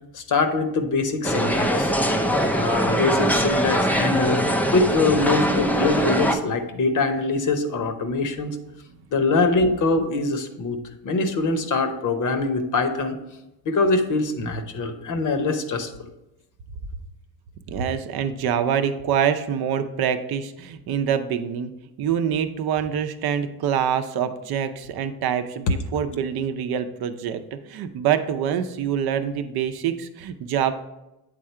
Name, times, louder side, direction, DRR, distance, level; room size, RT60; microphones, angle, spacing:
voice 1, 0.1-1.9 2.5-4.4 4.7-8.6 9.1-13.2 13.7-15.9, left 3 dB, 50° left, 8 dB, 0.8 m, -23 dB
sound 1, 1.2-6.4, equal, 5° left, 0.3 m, -22 dB
voice 2, 17.7-21.7 22.0-30.7, right 8 dB, 65° right, 9 dB, 0.6 m, -25 dB
8.3 x 3.7 x 4.4 m, 0.95 s
cardioid pair, 115°, 40 cm